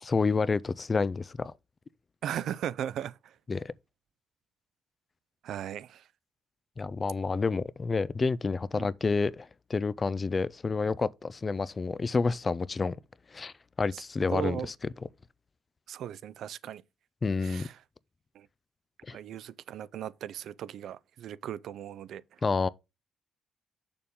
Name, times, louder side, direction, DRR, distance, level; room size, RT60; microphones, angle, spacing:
voice 1, 0.0-1.5 3.5-3.7 6.8-13.0 13.3-14.7 17.2-17.7 19.1-19.2 22.4-22.7, left 4 dB, 25° left, 0.4 m, -29 dB
voice 2, 2.2-3.3 5.4-6.0 8.7-8.9 13.9-14.0 14.3-14.7 15.9-16.8 17.4-17.8 18.4-18.5 19.1-22.2, right 10 dB, 70° right, 0.5 m, -37 dB
7.0 x 6.8 x 3.7 m
cardioid pair, 130°, 0 cm